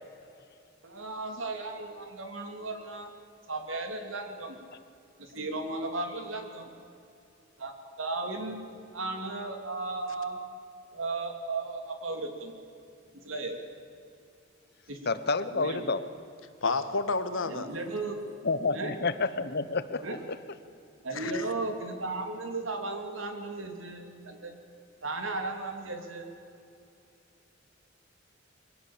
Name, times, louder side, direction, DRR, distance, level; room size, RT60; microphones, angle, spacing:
voice 1, 0.8-3.1 3.5-4.6 5.2-6.7 7.6-7.7 8.0-8.7 8.9-10.4 10.9-12.5 13.1-13.6 14.9-15.0 15.5-15.9 17.5-18.2 18.7-18.9 20.0-20.2 21.0-24.5 25.0-26.3, right 3 dB, 80° right, 4 dB, 3.0 m, -35 dB
voice 2, 15.1-16.0 18.4-20.0, left 3 dB, 55° left, 13 dB, 1.1 m, -29 dB
voice 3, 16.6-17.7 21.1-21.5, left 3 dB, 80° left, 10 dB, 1.5 m, -30 dB
23.5 x 18.0 x 7.4 m, 2.6 s
head